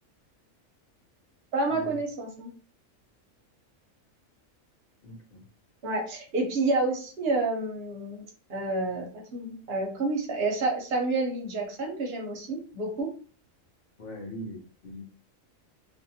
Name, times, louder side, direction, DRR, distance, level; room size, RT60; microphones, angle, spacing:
voice 1, 1.5-2.5 5.8-13.1, right 2 dB, 55° right, 0.9 m, -29 dB
voice 2, 5.0-5.4 14.0-15.0, equal, 50° left, 0.8 m, -41 dB
2.5 x 2.5 x 2.7 m
omnidirectional pair, 1.4 m